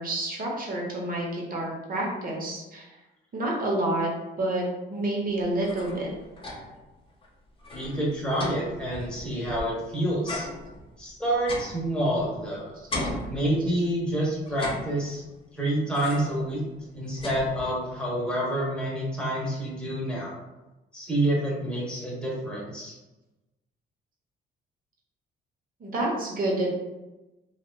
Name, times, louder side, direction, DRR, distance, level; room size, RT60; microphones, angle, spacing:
voice 1, 0.0-2.9 3.3-4.1 4.4-4.6 4.9-6.1 25.8-26.7, right 1 dB, 45° right, -2 dB, 0.9 m, -28 dB
sound 1, 5.4-6.9 7.2-7.3 7.6-9.8 10.3-12.5 12.9-14.0 14.5-15.4 15.9-16.5 16.8-18.0, left 1 dB, 25° left, 0.7 m, -37 dB
voice 2, 7.7-10.5 11.0-12.7 13.3-15.2 15.5-16.6 16.9-20.4 20.9-22.9, right 1 dB, 5° left, -5 dB, 1.1 m, -28 dB
2.9 x 2.4 x 2.2 m, 1.0 s
cardioid pair, 90°, 20 cm